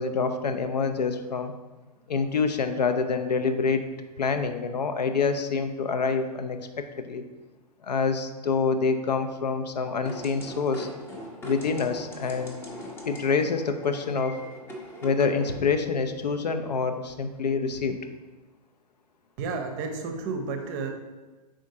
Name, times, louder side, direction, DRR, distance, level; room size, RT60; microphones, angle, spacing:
voice 1, 0.0-1.5 2.1-3.8 4.2-6.6 7.1-7.2 7.8-10.9 11.4-12.6 13.1-14.4 15.0-18.0, left 5 dB, 80° left, 8 dB, 0.5 m, -26 dB
sound 1, 10.1-15.6, equal, 10° left, 0.6 m, -41 dB
voice 2, 19.4-20.9, right 4 dB, 30° right, 5 dB, 0.6 m, -31 dB
5.1 x 3.7 x 2.7 m, 1.2 s
figure-of-eight pair, 120°, 21 cm